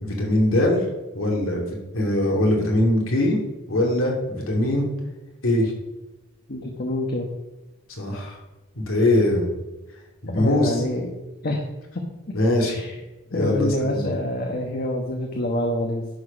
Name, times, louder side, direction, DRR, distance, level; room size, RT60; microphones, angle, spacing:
voice 1, 0.0-0.8 1.1-4.8 5.4-5.7 8.0-8.4 8.8-9.5 10.2-10.8 12.3-12.8 13.3-14.0, left 1 dB, 90° left, -1 dB, 2.8 m, -22 dB
voice 2, 6.5-7.3 10.4-11.1 11.4-11.6 12.7-12.9 13.3-16.1, left 1 dB, 50° left, 1 dB, 1.2 m, -26 dB
11.0 x 4.7 x 6.1 m, 1.1 s
head